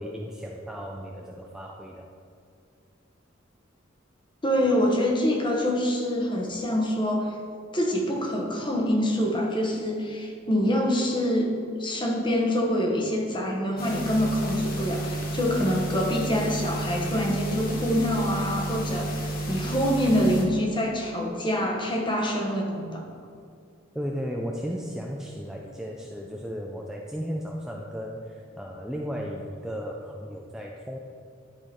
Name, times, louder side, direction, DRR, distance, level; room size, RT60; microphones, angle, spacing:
voice 1, 0.0-2.1 23.9-31.0, equal, 5° right, -1 dB, 0.4 m, -35 dB
voice 2, 4.4-7.3 7.7-11.5 11.8-23.0, equal, 25° left, 0 dB, 1.1 m, -25 dB
sound 1, 13.8-20.4, right 2 dB, 50° left, 1.2 m, -31 dB
11.0 x 4.9 x 4.3 m, 2.3 s
head